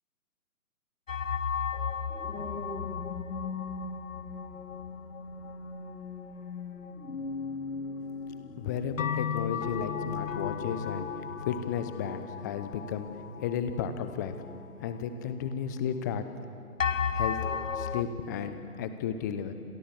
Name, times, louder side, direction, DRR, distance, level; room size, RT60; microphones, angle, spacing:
sound 1, 1.1-7.9 8.2-8.3 9.0-14.9 15.4-15.5 16.8-18.0, left 7 dB, 55° left, 1.4 m, -35 dB
sound 2, 1.8-12.4 12.9-13.2, left 3 dB, 80° left, 2.8 m, -41 dB
voice 1, 8.3-11.1 11.4-13.1 13.4-14.3 14.8-16.3 17.1-17.4 17.7-19.5, left 8 dB, 10° left, 10 dB, 0.8 m, -33 dB
29.0 x 26.0 x 7.2 m, 2.6 s
figure-of-eight pair, 140°, 45 cm